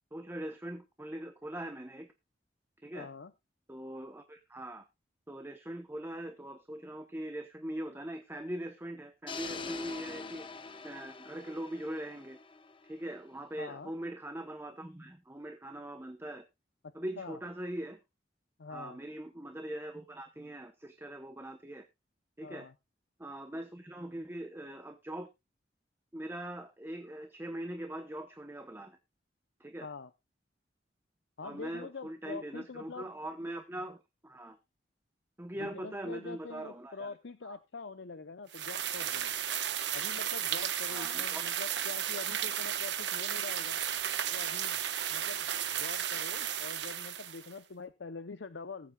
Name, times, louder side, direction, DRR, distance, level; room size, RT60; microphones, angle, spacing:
voice 1, 0.1-2.1 2.8-3.1 3.7-4.8 5.3-10.5 10.8-12.4 12.9-16.4 16.9-18.0 18.7-21.8 22.4-22.7 23.2-25.3 26.1-29.0 29.6-29.9 31.4-34.6 35.4-37.2 37.4-37.6 40.9-41.5, right 1 dB, 15° right, 7 dB, 0.9 m, -41 dB
voice 2, 2.9-3.3 13.6-13.9 16.8-17.4 18.6-19.0 22.4-22.7 29.8-30.1 31.4-33.1 35.6-39.3 39.9-43.8 44.3-44.8 45.1-48.9, left 4 dB, 85° left, 11 dB, 0.7 m, -45 dB
sound 1, 9.3-13.3, left 4 dB, 30° left, 0.9 m, -44 dB
sound 2, 38.5-47.5, right 10 dB, 75° right, 1.1 m, -34 dB
19.0 x 8.4 x 2.3 m, 0.23 s
head